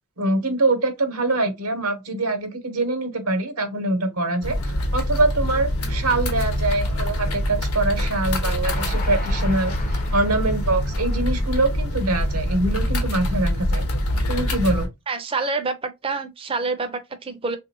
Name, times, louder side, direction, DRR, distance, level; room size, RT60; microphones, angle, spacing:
voice 1, 0.2-13.8 14.3-14.9, right 2 dB, 80° right, 0.9 m, -24 dB
sound 1, 4.4-14.9, left 1 dB, 85° left, 1.0 m, -24 dB
Train, 8.6-12.1 12.6-12.7 13.0-13.1, left 3 dB, 35° left, 0.5 m, -38 dB
voice 2, 15.1-17.6, right 3 dB, 25° right, 0.4 m, -27 dB
3.2 x 2.5 x 2.7 m
head